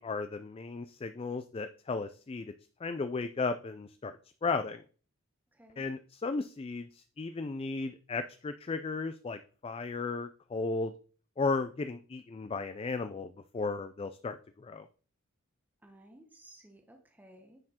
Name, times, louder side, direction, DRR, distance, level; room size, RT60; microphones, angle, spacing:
voice 1, 0.0-2.5 2.8-4.1 4.4-4.8 5.8-10.9 11.4-14.9, left 4 dB, 25° left, 10 dB, 0.3 m, -35 dB
voice 2, 5.5-5.9 15.8-17.6, right 1 dB, 10° right, 4 dB, 0.9 m, -56 dB
9.8 x 4.4 x 4.3 m, 0.41 s
head